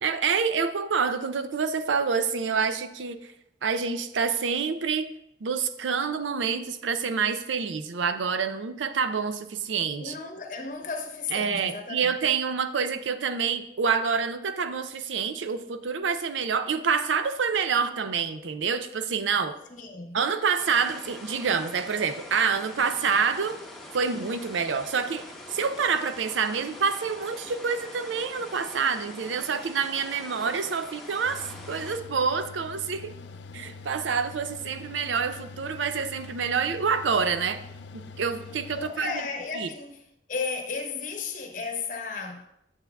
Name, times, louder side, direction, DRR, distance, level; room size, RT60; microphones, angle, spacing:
voice 1, 0.0-3.3 3.6-5.1 5.4-10.1 11.3-19.5 20.1-23.6 23.9-25.2 25.5-33.1 33.5-37.6 37.9-39.1 39.6-39.7, right 5 dB, 90° right, 0.5 m, -27 dB
voice 2, 10.0-12.2 19.7-20.2 38.7-40.0 40.3-42.5, left 4 dB, 45° left, 0.8 m, -34 dB
sound 1, 20.6-32.0, left 1 dB, ahead, 0.8 m, -44 dB
Mechanical fan, 31.3-39.7, left 3 dB, 75° left, 0.4 m, -44 dB
9.1 x 7.2 x 2.3 m
head